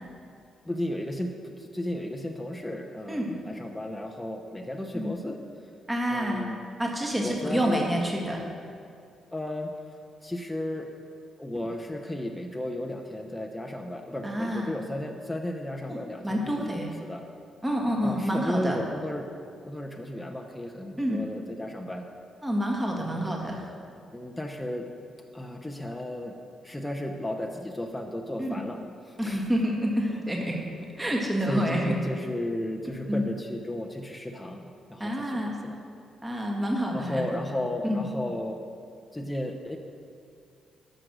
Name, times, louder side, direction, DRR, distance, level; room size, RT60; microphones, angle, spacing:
voice 1, 0.6-5.7 6.1-6.6 7.2-7.8 9.3-9.7 10.2-10.9 11.4-17.2 18.0-19.3 19.6-22.1 22.9-23.3 24.1-24.9 25.3-26.3 26.6-28.8 29.0-29.4 30.0-30.2 31.5-35.8 36.9-38.6 39.1-39.8, left 1 dB, 10° left, 2 dB, 0.9 m, -34 dB
voice 2, 5.9-6.4 6.8-8.4 14.2-14.7 15.9-16.0 16.2-16.9 17.6-18.8 21.0-21.2 22.4-23.6 28.4-28.6 29.2-30.6 31.0-31.9 33.1-33.3 35.0-35.6 36.2-37.2 37.8-38.0, equal, 15° right, -1 dB, 1.9 m, -28 dB
11.5 x 6.4 x 6.3 m, 2.3 s
cardioid pair, 85°, 0 cm